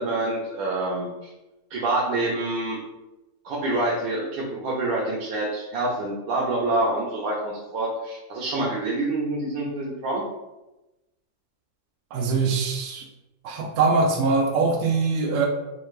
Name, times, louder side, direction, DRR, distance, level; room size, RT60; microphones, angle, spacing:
voice 1, 0.0-1.3 1.7-2.8 3.4-10.2, right 2 dB, 85° right, -5 dB, 1.5 m, -26 dB
voice 2, 12.1-13.0 13.4-15.5, right 4 dB, 70° right, 0 dB, 1.0 m, -22 dB
5.5 x 2.4 x 3.1 m, 1.0 s
omnidirectional pair, 2.0 m